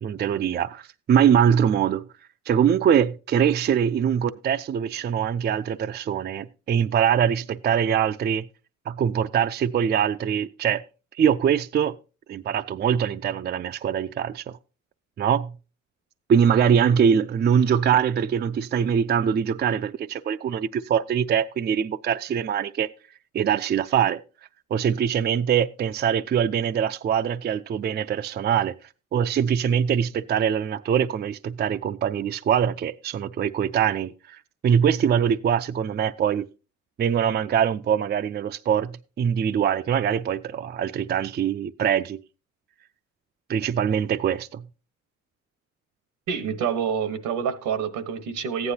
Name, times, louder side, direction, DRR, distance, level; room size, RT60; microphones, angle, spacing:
voice 1, 0.0-2.0 2.5-8.5 8.9-10.8 11.2-12.0 12.3-14.4 15.2-15.5 16.3-22.9 23.3-24.2 24.7-28.7 29.1-36.5 37.0-42.2 43.5-44.6, right 8 dB, 35° right, 0.4 m, -23 dB
voice 2, 46.3-48.7, right 7 dB, 85° right, 1.2 m, -27 dB
14.5 x 9.6 x 2.8 m
cardioid pair, 90°, 30 cm